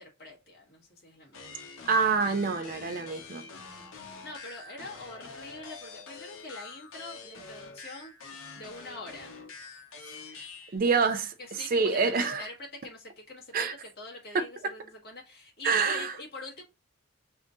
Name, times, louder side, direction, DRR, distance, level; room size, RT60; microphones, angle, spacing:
voice 1, 0.0-1.7 3.6-8.1 8.5-9.4 10.0-10.2 10.6-10.8 11.4-13.7 14.0-16.6, left 2 dB, 45° left, 1.6 m, -45 dB
sound 1, 1.3-10.8, left 4 dB, 75° left, 1.0 m, -46 dB
voice 2, 1.9-3.4 10.7-11.3 11.7-12.4 13.5-13.7 14.3-14.4 15.6-16.1, right 5 dB, 40° right, 0.4 m, -26 dB
3.6 x 2.6 x 3.7 m
head